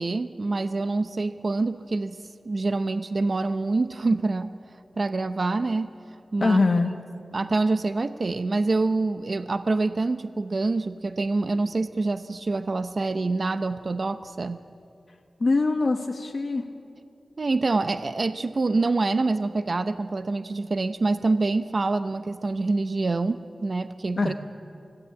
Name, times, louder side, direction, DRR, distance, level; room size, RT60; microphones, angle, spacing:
voice 1, 0.0-2.2 2.4-4.5 5.0-5.9 6.3-6.6 7.3-14.6 17.4-24.3, right 3 dB, 50° right, 10 dB, 0.7 m, -26 dB
voice 2, 6.4-6.9 15.4-16.7 24.2-24.3, left 3 dB, 50° left, 4 dB, 1.1 m, -22 dB
24.5 x 16.0 x 8.4 m, 2.6 s
wide cardioid pair, 90°, 0 cm